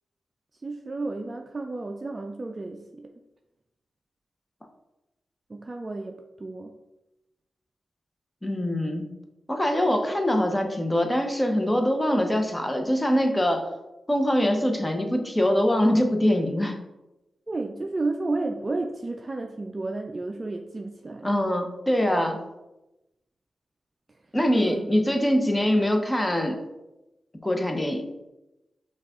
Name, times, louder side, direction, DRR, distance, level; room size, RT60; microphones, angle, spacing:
voice 1, 0.6-3.1 5.5-6.7 17.5-21.3 24.6-24.8, right 2 dB, 35° right, 3 dB, 0.4 m, -32 dB
voice 2, 8.4-9.1 9.5-13.7 14.1-16.8 21.2-22.4 24.3-26.6 27.4-28.1, left 1 dB, 15° left, 4 dB, 0.8 m, -23 dB
5.6 x 2.4 x 3.6 m, 0.97 s
cardioid pair, 50°, 0 cm